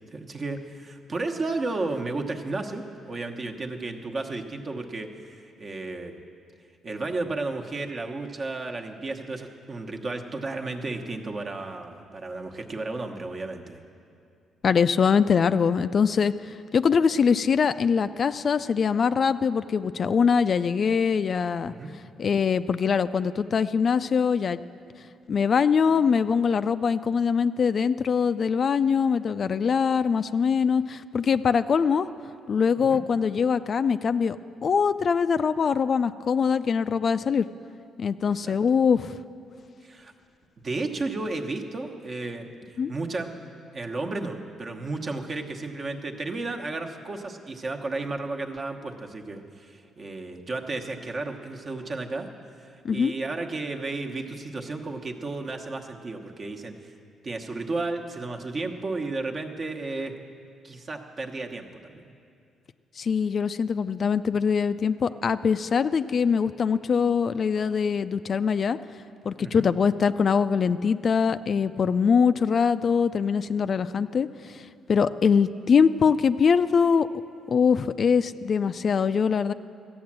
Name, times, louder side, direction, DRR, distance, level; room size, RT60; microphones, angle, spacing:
voice 1, 0.1-6.1 6.8-13.8 21.7-21.9 32.8-33.0 38.3-38.6 39.8-40.1 40.6-43.3 43.7-52.3 52.6-56.9 57.2-60.1 60.6-62.1 69.4-69.7, right 3 dB, 40° right, 3 dB, 1.1 m, -33 dB
voice 2, 14.6-21.7 22.2-24.6 25.3-32.1 32.5-34.4 34.6-37.5 38.0-39.2 42.8-42.9 52.8-53.1 63.0-68.8 69.2-77.1 77.5-79.5, left 6 dB, 50° left, 12 dB, 0.3 m, -23 dB
13.5 x 8.6 x 7.4 m, 2.4 s
cardioid pair, 90°, 0 cm